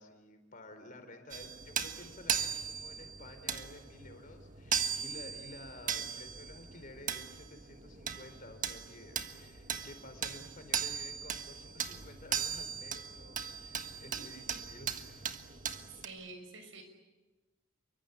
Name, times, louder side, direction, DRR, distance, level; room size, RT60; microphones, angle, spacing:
voice 1, 0.0-15.3 15.7-16.1, left 2 dB, 40° left, 7 dB, 4.3 m, -52 dB
sound 1, 1.3-16.1, right 8 dB, 40° right, 1.5 m, -38 dB
voice 2, 15.9-16.8, right 3 dB, 70° right, 6 dB, 6.3 m, -48 dB
29.0 x 24.0 x 8.4 m, 1.2 s
head